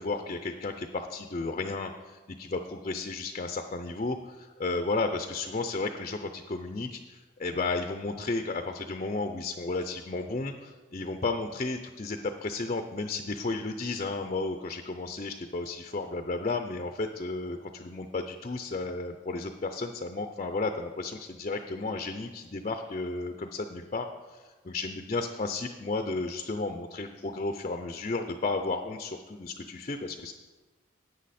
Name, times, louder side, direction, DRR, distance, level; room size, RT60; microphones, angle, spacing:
voice 1, 0.0-24.4 24.6-30.3, left 3 dB, 35° left, 6 dB, 0.5 m, -33 dB
11.5 x 8.6 x 4.2 m, 1.3 s
head